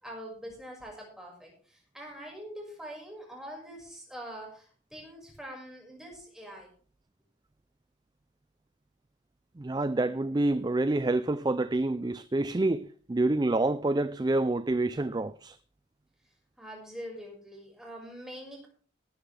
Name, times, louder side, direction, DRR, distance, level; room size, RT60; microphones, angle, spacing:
voice 1, 0.0-6.7 16.6-18.7, equal, 5° right, 5.7 m, -44 dB
voice 2, 9.6-15.6, right 2 dB, 20° right, 0.4 m, -27 dB
18.5 x 10.0 x 3.4 m
head